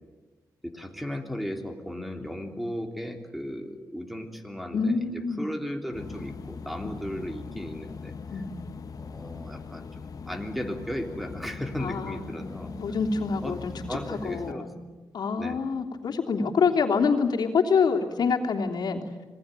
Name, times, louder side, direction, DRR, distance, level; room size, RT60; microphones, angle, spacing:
voice 1, 0.6-8.2 9.0-12.7 13.4-13.6 13.9-14.9 15.4-15.7, equal, ahead, 5 dB, 3.4 m, -36 dB
voice 2, 4.7-5.5 6.8-6.9 8.3-8.5 11.8-13.7 14.1-14.7 15.1-19.0, left 5 dB, 75° left, 2 dB, 3.3 m, -26 dB
sound 1, 5.9-14.5, left 5 dB, 60° left, 1.3 m, -41 dB
26.0 x 20.0 x 9.1 m, 1.2 s
cardioid pair, 95°, 7 cm